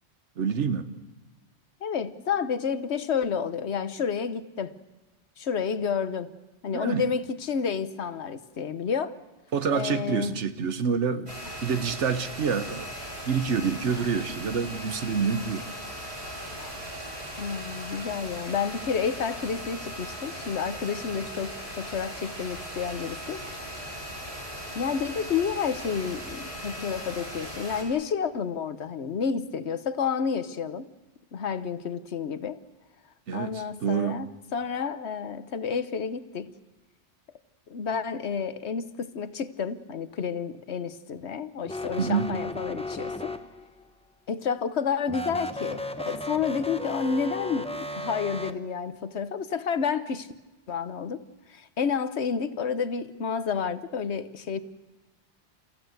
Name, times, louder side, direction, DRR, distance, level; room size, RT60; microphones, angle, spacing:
voice 1, 0.4-0.9 6.7-7.1 9.5-11.3 11.6-12.9 13.3-15.6 33.3-34.2 42.0-42.3, right 6 dB, 90° right, 11 dB, 1.3 m, -27 dB
voice 2, 1.8-4.7 5.4-6.3 6.6-9.1 9.7-10.4 16.6-16.7 17.4-23.4 24.7-30.9 31.3-32.6 33.3-36.5 37.7-43.3 44.3-50.3 50.7-51.2 51.5-54.6, left 6 dB, 70° left, 13 dB, 1.3 m, -30 dB
sound 1, 11.3-27.8, equal, 60° right, 6.0 m, -38 dB
sound 2, 41.6-43.8 45.1-48.5, left 1 dB, 5° left, 0.9 m, -35 dB
29.5 x 15.0 x 8.0 m, 1.2 s
omnidirectional pair, 1.2 m